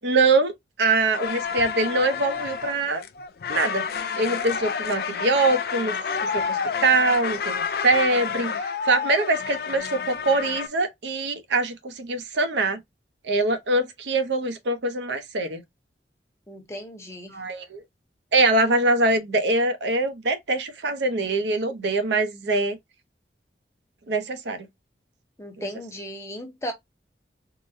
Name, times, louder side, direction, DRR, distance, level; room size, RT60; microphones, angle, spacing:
voice 1, 0.0-0.5 0.8-3.0 3.5-3.8 4.2-6.0 6.2-12.8 13.2-15.6 17.3-17.8 18.3-22.8 24.1-24.7 25.6-25.7, right 2 dB, 80° right, 0.7 m, -23 dB
sound 1, 1.1-10.7, left 6 dB, 55° left, 0.4 m, -29 dB
voice 2, 16.5-17.4 25.4-26.7, equal, 15° left, 0.8 m, -36 dB
3.8 x 2.1 x 2.5 m
head